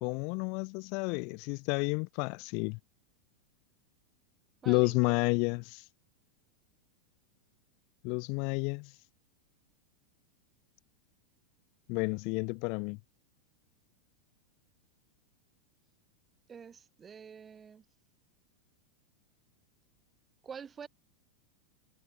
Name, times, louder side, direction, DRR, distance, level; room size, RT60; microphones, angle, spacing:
voice 1, 0.0-2.8 4.7-5.8 8.0-8.9 11.9-13.0, left 35 dB, 45° left, 0.7 m, -30 dB
voice 2, 4.6-5.2 8.3-8.6 16.5-17.8 20.4-20.9, right 7 dB, 20° right, 1.5 m, -47 dB
figure-of-eight pair, 90°, 0 cm